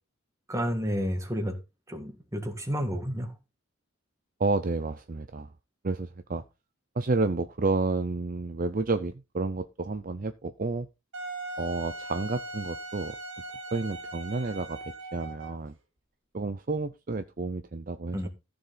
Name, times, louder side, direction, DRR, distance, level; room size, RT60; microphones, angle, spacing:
voice 1, 0.5-1.6 1.9-3.3 18.1-18.3, equal, 15° right, 2.0 m, -30 dB
voice 2, 4.4-5.5 5.8-6.4 7.0-10.9 11.6-13.2 13.7-15.7 16.3-18.3, right 3 dB, 40° right, 0.6 m, -30 dB
Wind instrument woodwind instrument, 11.1-15.7, right 2 dB, 65° right, 2.4 m, -39 dB
14.5 x 6.9 x 3.9 m
head